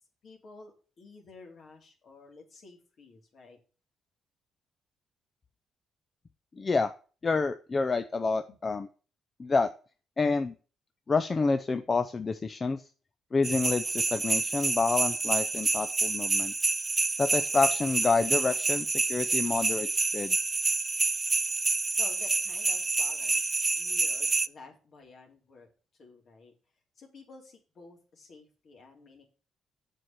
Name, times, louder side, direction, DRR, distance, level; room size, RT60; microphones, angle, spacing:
voice 1, 0.2-3.6 8.5-8.6 22.0-23.4 23.7-25.7 26.0-26.5 27.0-29.2, left 3 dB, 55° left, 1 dB, 2.8 m, -51 dB
voice 2, 6.6-6.9 7.2-8.9 9.4-9.7 10.2-10.5 11.1-12.8 13.3-16.5 17.2-19.9 20.1-20.4, left 4 dB, 30° left, 9 dB, 0.6 m, -28 dB
sound 1, 13.4-24.5, right 3 dB, 25° right, 0.4 m, -28 dB
7.6 x 4.8 x 5.9 m, 0.38 s
cardioid pair, 90°, 0 cm